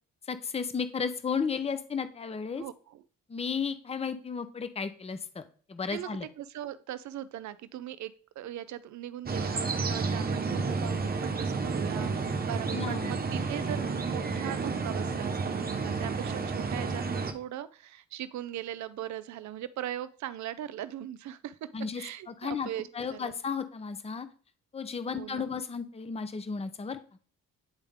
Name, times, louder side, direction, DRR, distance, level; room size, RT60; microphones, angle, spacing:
voice 1, 0.3-2.6 3.3-5.4 5.7-6.3 12.7-13.1 21.7-22.7 22.9-24.3 24.7-27.0, left 5 dB, 20° left, 11 dB, 0.7 m, -34 dB
voice 2, 2.6-3.0 5.9-6.1 6.4-21.7 22.0-23.3 25.1-25.5, right 12 dB, 70° right, 15 dB, 0.6 m, -40 dB
sound 1, 9.3-17.3, right 4 dB, 30° right, 1.0 m, -31 dB
9.6 x 3.6 x 3.5 m, 0.42 s
cardioid pair, 90°, 30 cm